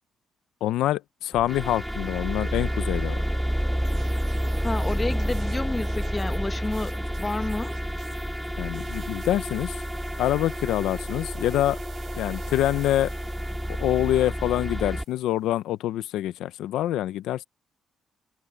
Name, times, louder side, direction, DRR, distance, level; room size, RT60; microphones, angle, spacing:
voice 1, 0.6-3.2 8.6-9.8 10.2-11.8 12.2-13.1 13.8-17.4, left 13 dB, 85° left, 0.6 m, -26 dB
sound 1, 1.3-15.0, equal, ahead, 0.5 m, -29 dB
sound 2, 3.8-15.2, right 7 dB, 55° right, 6.9 m, -51 dB
voice 2, 4.6-7.8, left 2 dB, 20° left, 1.5 m, -30 dB
cardioid pair, 90°, 0 cm